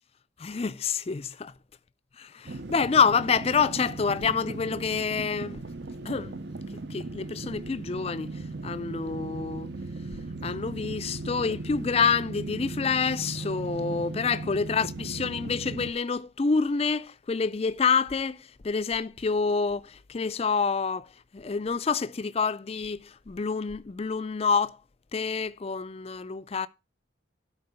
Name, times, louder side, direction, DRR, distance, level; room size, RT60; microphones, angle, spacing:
voice 1, 0.4-1.5 2.2-5.6 6.0-6.3 6.9-8.3 8.6-9.7 10.4-21.1 21.3-24.8 25.1-26.7, left 5 dB, 30° left, 0.4 m, -27 dB
sound 1, 2.5-15.9, right 3 dB, 60° right, 0.7 m, -37 dB
12.5 x 4.6 x 5.6 m
head